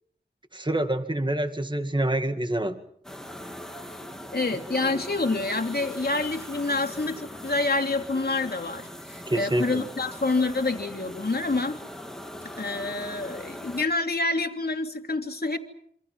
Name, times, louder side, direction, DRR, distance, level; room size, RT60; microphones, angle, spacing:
voice 1, 0.5-2.8 9.3-9.8, right 1 dB, 25° right, 8 dB, 2.0 m, -26 dB
sound 1, 3.0-13.9, equal, 5° left, 3.5 m, -41 dB
voice 2, 4.3-11.8 12.4-15.6, left 3 dB, 60° left, 4 dB, 3.1 m, -27 dB
28.0 x 26.5 x 5.7 m, 0.69 s
wide cardioid pair, 55°, 19 cm